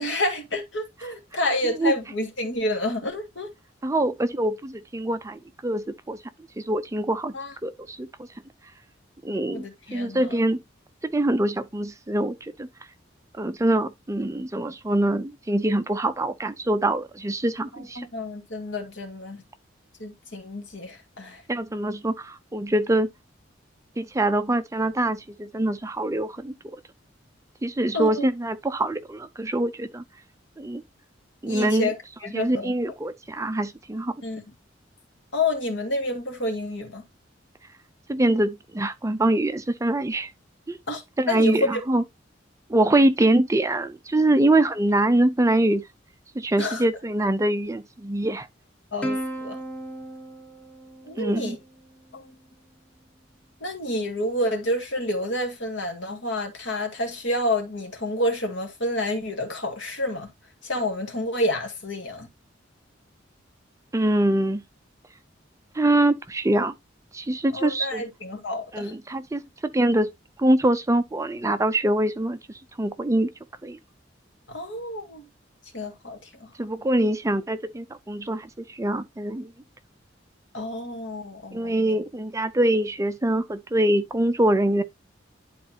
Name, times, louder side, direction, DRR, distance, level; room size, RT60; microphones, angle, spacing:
voice 1, 0.0-3.5 7.3-7.5 9.5-10.4 17.7-19.4 20.0-21.4 27.9-28.2 31.5-32.7 34.2-34.4 35.3-37.0 40.9-41.8 46.6-46.9 48.9-49.6 51.0-51.6 52.1-52.3 53.6-60.3 60.6-62.3 67.5-68.9 74.5-75.2 75.7-76.5 80.5-82.0, left 1 dB, 70° left, 2.1 m, -29 dB
voice 2, 3.8-6.2 6.6-7.3 7.6-8.1 9.2-9.6 9.9-10.6 11.1-12.7 13.4-18.1 21.5-23.1 24.0-26.5 27.6-30.0 30.6-30.8 31.4-31.9 32.3-34.1 38.1-40.3 40.7-40.8 41.2-42.0 42.7-45.8 46.4-48.5 51.2-51.6 63.9-64.6 65.7-66.7 67.1-68.0 68.7-69.4 69.7-70.1 70.4-72.4 72.8-73.3 73.6-73.8 76.6-79.5 81.5-84.8, right 1 dB, 15° right, 0.5 m, -24 dB
Plucked string instrument, 49.0-51.8, right 1 dB, 5° left, 1.4 m, -34 dB
11.0 x 4.1 x 2.8 m
head